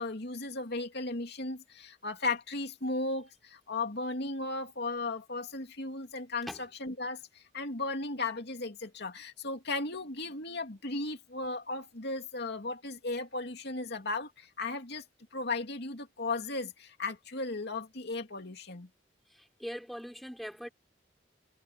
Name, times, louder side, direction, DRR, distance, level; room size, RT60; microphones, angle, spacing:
voice 1, 0.0-15.1 15.3-18.9, left 3 dB, 60° left, 2.7 m, -36 dB
voice 2, 19.6-20.7, equal, ahead, 3.3 m, -40 dB
head